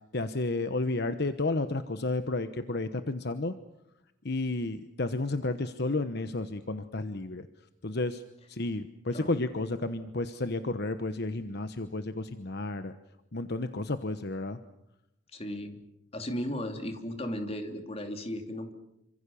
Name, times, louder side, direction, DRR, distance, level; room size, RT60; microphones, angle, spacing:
voice 1, 0.1-3.5 4.2-7.5 7.8-8.2 8.5-12.9 13.3-14.6, left 2 dB, 55° left, 10 dB, 1.1 m, -32 dB
voice 2, 15.3-15.8 16.1-18.7, left 1 dB, 30° left, 5 dB, 2.9 m, -35 dB
28.0 x 26.0 x 7.0 m, 0.84 s
head